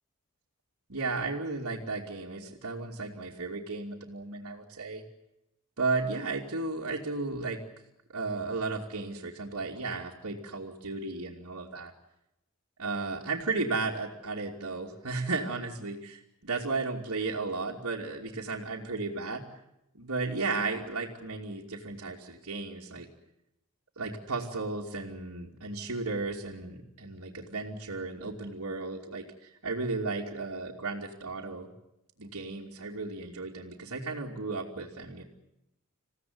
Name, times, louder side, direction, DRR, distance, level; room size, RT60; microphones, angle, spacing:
voice 1, 0.9-5.0 5.8-7.6 8.1-11.9 12.8-19.4 19.9-23.1 24.0-31.7 32.2-35.2, right 3 dB, 80° right, -3 dB, 2.8 m, -34 dB
28.0 x 16.5 x 9.6 m, 0.89 s
head